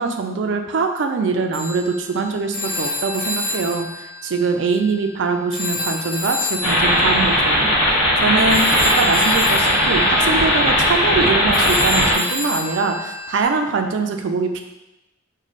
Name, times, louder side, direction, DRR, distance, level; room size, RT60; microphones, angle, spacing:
voice 1, 0.0-14.6, right 4 dB, 65° right, 5 dB, 0.4 m, -23 dB
Telephone, 1.5-5.2 5.5-13.4, left 3 dB, 45° left, 0.6 m, -29 dB
sound 1, 6.6-12.1, equal, 65° left, 1.2 m, -17 dB
3.1 x 2.2 x 4.0 m, 0.96 s
head